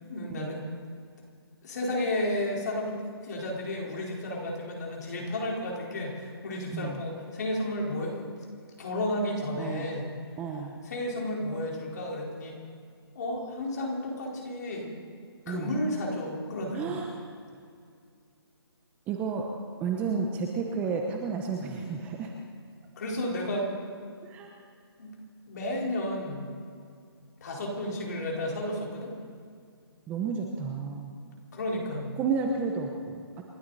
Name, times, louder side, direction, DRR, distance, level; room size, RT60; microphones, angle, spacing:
voice 1, 0.1-0.6 1.6-3.0 3.2-8.3 8.8-10.1 10.8-12.6 13.1-14.9 15.5-17.0 23.0-23.7 25.0-25.1 25.5-26.4 27.4-29.1 31.5-32.1, left 1 dB, 40° left, -2 dB, 4.3 m, -32 dB
voice 2, 9.6-9.9 10.4-10.7 15.5-15.7 16.7-17.1 19.1-19.5 19.8-22.3 24.2-24.5 30.1-31.1 32.2-33.4, right 5 dB, 10° right, 1 dB, 0.8 m, -31 dB
29.0 x 12.0 x 4.1 m, 2.3 s
hypercardioid pair, 160°, 14 cm